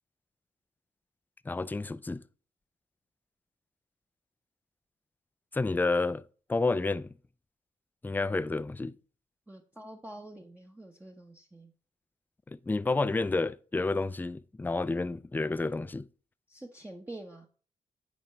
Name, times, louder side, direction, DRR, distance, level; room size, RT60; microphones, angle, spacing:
voice 1, 1.5-2.2 5.5-6.2 6.5-7.1 8.0-9.0 12.5-16.1, left 3 dB, 10° left, 0.4 m, -30 dB
voice 2, 9.5-11.7 16.5-17.5, right 1 dB, 10° right, 0.9 m, -46 dB
9.3 x 4.5 x 3.3 m
hypercardioid pair, 40°, 16 cm